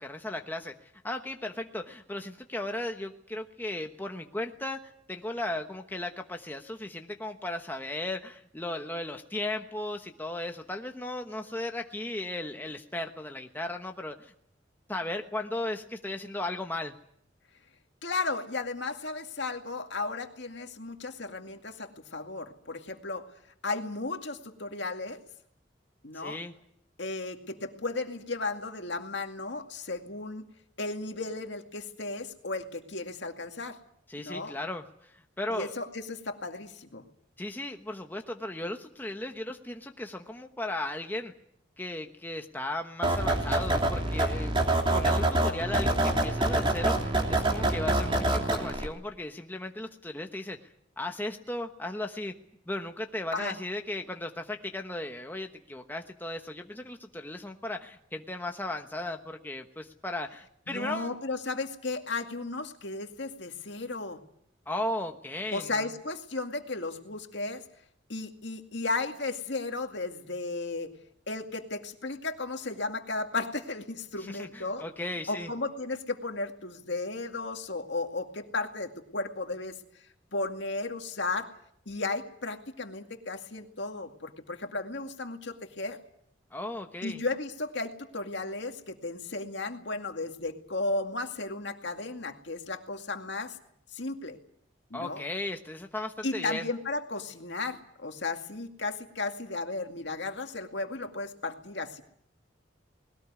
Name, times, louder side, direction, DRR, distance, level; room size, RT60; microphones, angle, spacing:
voice 1, 0.0-14.3 14.9-16.9 26.1-26.5 34.1-35.7 37.4-41.3 41.8-44.5 44.9-50.6 51.0-52.3 52.7-61.1 64.7-65.9 74.2-75.5 86.5-87.2 94.9-96.7, left 1 dB, 10° left, 4 dB, 1.2 m, -36 dB
voice 2, 18.0-23.3 23.6-25.2 26.0-26.4 27.0-30.5 30.8-33.8 34.2-34.5 35.5-37.0 53.3-53.6 60.7-64.2 65.5-67.6 68.1-70.9 71.3-74.8 75.3-79.7 80.3-81.5 81.9-86.0 87.0-93.6 93.9-94.4 94.9-95.2 96.2-102.0, left 3 dB, 65° left, 5 dB, 2.3 m, -34 dB
sound 1, 43.0-48.9, right 1 dB, 25° right, 3.1 m, -26 dB
20.5 x 18.5 x 9.7 m, 0.68 s
head